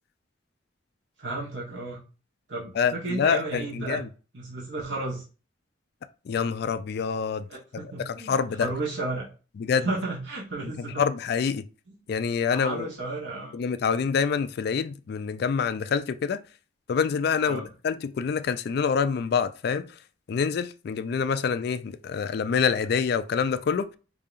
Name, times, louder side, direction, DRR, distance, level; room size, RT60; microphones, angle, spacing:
voice 1, 1.2-2.0 2.5-4.0 4.3-5.2 7.5-9.3 9.8-11.0 11.9-12.0 12.5-13.6 17.4-17.7, right 2 dB, 75° right, 1.2 m, -33 dB
voice 2, 2.8-4.1 6.3-7.4 8.3-8.7 9.6-9.9 11.0-11.6 12.1-12.9 13.5-16.4 16.9-19.9 20.3-23.9, left 6 dB, 55° left, 0.3 m, -26 dB
5.0 x 2.7 x 2.5 m
head